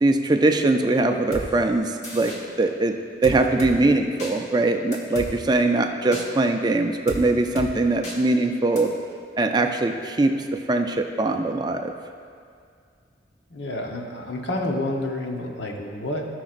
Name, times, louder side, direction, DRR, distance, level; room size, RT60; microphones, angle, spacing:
voice 1, 0.0-2.3 2.6-3.0 3.2-8.9 9.4-11.9, right 2 dB, 25° right, 5 dB, 0.4 m, -21 dB
sound 1, 1.3-1.5 2.0-2.4 3.2-3.7 4.2-4.3 4.9-5.3 6.1-6.2 7.1-7.2 7.6-7.7 8.0-8.2 8.8-8.9, equal, 40° left, 1.4 m, -33 dB
voice 2, 13.5-16.2, left 1 dB, 80° left, 1 dB, 1.0 m, -29 dB
17.0 x 6.0 x 2.5 m, 2.2 s
head